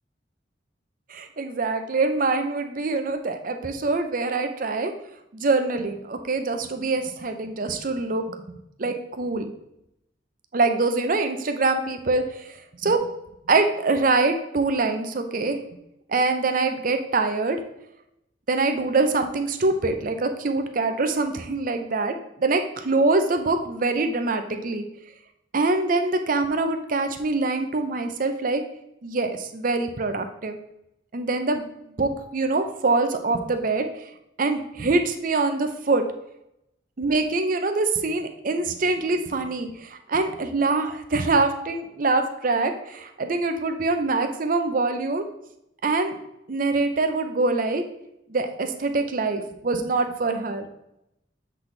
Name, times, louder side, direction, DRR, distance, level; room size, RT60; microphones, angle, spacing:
voice 1, 1.1-4.9 5.3-8.4 8.8-9.5 10.5-13.1 13.5-15.6 16.1-17.6 18.5-22.2 22.4-24.9 25.5-28.6 29.0-30.6 31.1-31.6 32.0-33.9 34.4-36.0 37.0-45.2 45.8-46.2 46.5-47.8 48.3-50.7, right 3 dB, 45° right, 7 dB, 0.6 m, -24 dB
7.5 x 4.0 x 3.2 m, 0.83 s
head